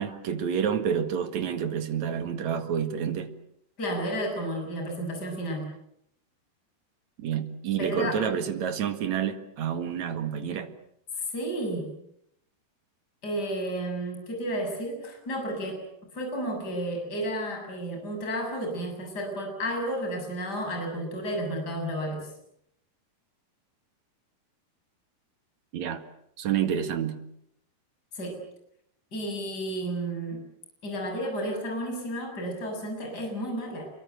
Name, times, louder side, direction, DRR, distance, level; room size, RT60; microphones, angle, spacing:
voice 1, 0.0-3.3 7.2-10.7 25.7-26.0 26.4-27.2, right 8 dB, 50° right, 8 dB, 2.8 m, -29 dB
voice 2, 3.8-5.7 7.8-8.2 11.2-11.9 13.2-15.8 16.1-22.3 28.1-28.4 29.1-30.4 30.8-33.9, right 1 dB, 25° left, 3 dB, 7.4 m, -32 dB
28.0 x 23.5 x 8.0 m, 0.75 s
omnidirectional pair, 4.6 m